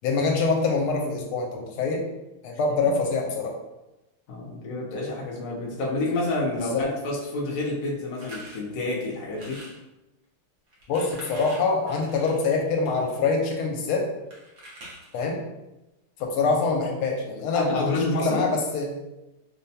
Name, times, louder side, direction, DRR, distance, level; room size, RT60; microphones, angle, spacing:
voice 1, 0.0-2.0 2.4-3.5 6.7-6.9 10.9-14.1 15.1-15.4 16.2-18.9, left 4 dB, 85° left, 1 dB, 1.5 m, -25 dB
voice 2, 4.3-9.6 16.4-16.6 17.5-18.4, left 2 dB, 60° left, -3 dB, 1.0 m, -29 dB
sound 1, 8.1-8.6 9.3-9.8 10.7-13.2 14.3-15.2, right 1 dB, 55° right, 0.9 m, -45 dB
5.0 x 2.2 x 2.7 m, 0.98 s
omnidirectional pair, 2.4 m